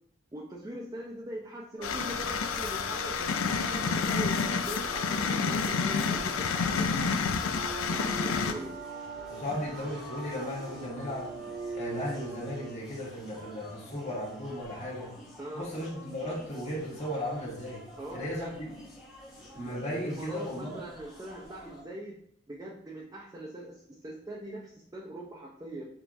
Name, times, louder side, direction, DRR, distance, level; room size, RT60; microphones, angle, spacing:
voice 1, 0.3-7.1 7.4-8.8 9.5-9.6 15.4-15.7 18.0-18.5 19.9-22.2 22.5-25.9, right 1 dB, 15° right, -3 dB, 0.4 m, -42 dB
sound 1, 1.8-8.5, left 5 dB, 90° left, 0.4 m, -29 dB
sound 2, 1.8-12.8, right 4 dB, 70° right, 0.5 m, -43 dB
sound 3, 3.4-21.8, left 1 dB, ahead, 0.8 m, -50 dB
voice 2, 9.3-11.3 11.8-15.1 15.5-17.8 18.1-18.7 19.4-20.8, left 1 dB, 30° left, -6 dB, 1.5 m, -36 dB
6.7 x 2.4 x 2.5 m, 0.68 s
head